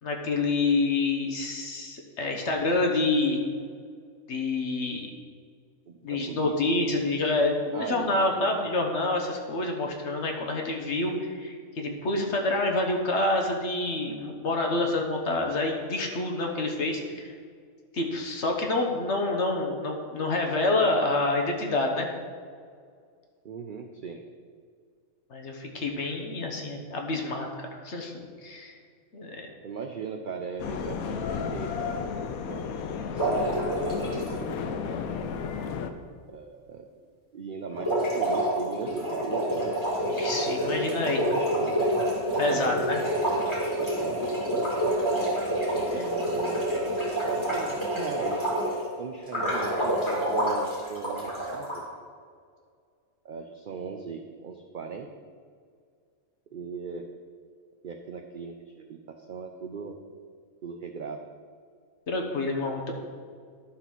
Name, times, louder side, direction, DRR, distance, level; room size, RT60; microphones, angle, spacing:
voice 1, 0.0-3.4 4.3-5.1 6.0-17.3 17.9-22.1 25.3-28.8 29.1-29.4 40.1-41.4 42.4-43.0 45.9-46.1 62.1-62.9, left 2 dB, 55° left, 2 dB, 1.3 m, -27 dB
voice 2, 5.9-6.6 6.9-7.0 7.7-8.5 23.4-24.2 29.6-31.2 31.5-32.1 32.5-32.9 33.2-33.5 34.1-35.0 36.3-36.9 37.3-39.8 41.3-41.9 42.5-43.1 43.8-44.5 45.9-46.8 47.3-48.4 49.0-51.9 53.2-55.1 56.5-57.1 57.8-60.0 60.6-61.2, right 5 dB, 65° right, 4 dB, 0.5 m, -39 dB
sound 1, 30.6-35.9, left 6 dB, 80° left, 1.1 m, -33 dB
sound 2, 33.2-34.3 37.7-48.8 49.3-51.8, right 1 dB, 20° left, 2.5 m, -27 dB
11.5 x 4.0 x 6.1 m, 2.1 s
omnidirectional pair, 1.5 m